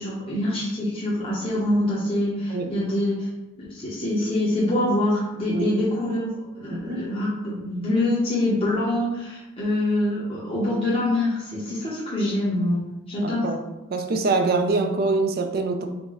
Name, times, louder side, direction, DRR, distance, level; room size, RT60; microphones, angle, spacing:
voice 1, 0.0-3.3 3.6-12.8 13.1-13.5, left 1 dB, 25° left, -9 dB, 1.1 m, -25 dB
voice 2, 6.7-7.1 13.2-13.6 13.9-15.9, right 3 dB, 45° right, 5 dB, 0.5 m, -24 dB
4.4 x 2.2 x 4.5 m, 0.97 s
head